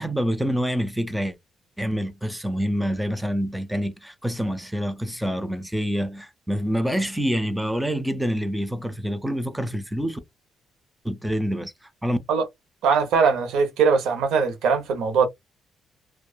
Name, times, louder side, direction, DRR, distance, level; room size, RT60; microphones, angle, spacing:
voice 1, 0.0-1.4 1.8-10.2 11.0-11.7 12.0-12.2, equal, 5° right, 0.5 m, -26 dB
voice 2, 12.8-15.3, right 5 dB, 85° right, 0.8 m, -21 dB
2.7 x 2.2 x 2.2 m
cardioid pair, 90°, 0 cm